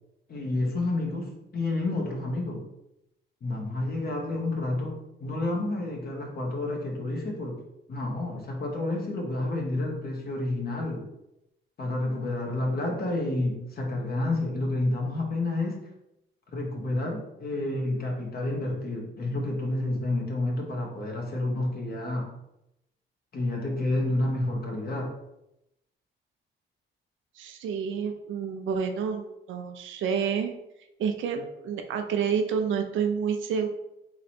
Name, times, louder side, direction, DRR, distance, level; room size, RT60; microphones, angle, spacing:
voice 1, 0.3-2.7 3.4-7.6 7.9-11.1 11.8-15.8 16.5-22.3 23.3-25.1, left 2 dB, 50° left, 0 dB, 1.4 m, -29 dB
voice 2, 27.3-30.5 31.0-33.7, right 6 dB, 80° right, 5 dB, 0.7 m, -29 dB
3.9 x 3.2 x 4.3 m, 0.86 s
cardioid pair, 90°, 20 cm